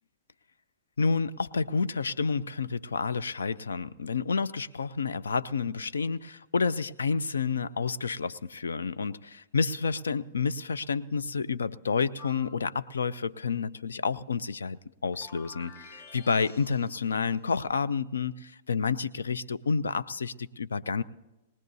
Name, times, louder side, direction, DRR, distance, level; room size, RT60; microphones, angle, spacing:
voice 1, 1.0-21.0, left 5 dB, 85° left, 16 dB, 0.5 m, -29 dB
sound 1, 12.2-12.7 15.1-17.3, left 3 dB, 50° left, 1.8 m, -50 dB
21.5 x 19.5 x 2.7 m, 1.0 s
hypercardioid pair, 110°, 0 cm